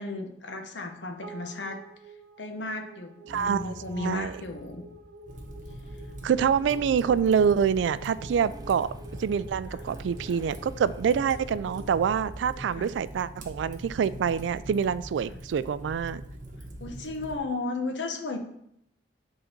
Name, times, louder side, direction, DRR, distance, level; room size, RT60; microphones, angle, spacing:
voice 1, 0.0-1.8 2.4-4.8 9.7-9.8 12.7-12.9 15.3-15.4 16.8-18.4, left 2 dB, 75° left, 5 dB, 1.0 m, -34 dB
sound 1, 1.2-13.7, right 1 dB, 65° right, 0.7 m, -50 dB
Motorcycle / Engine starting, 3.3-12.4, right 1 dB, 20° right, 0.5 m, -47 dB
voice 2, 3.3-4.3 6.2-8.9 9.2-16.2, right 7 dB, 80° right, 16 dB, 0.3 m, -26 dB
Fire, 5.3-17.4, right 1 dB, 45° right, 1.2 m, -42 dB
7.8 x 3.9 x 4.5 m, 0.75 s
head